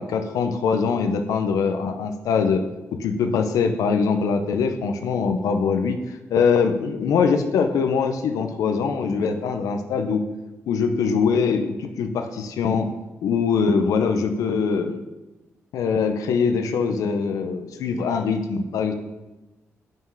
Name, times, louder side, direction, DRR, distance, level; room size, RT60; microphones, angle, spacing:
voice 1, 0.0-2.6 3.0-10.2 10.7-12.9 13.2-15.0 15.7-18.9, left 5 dB, 85° left, 7 dB, 0.7 m, -22 dB
6.4 x 4.5 x 6.1 m, 1.1 s
supercardioid pair, 60°, 6 cm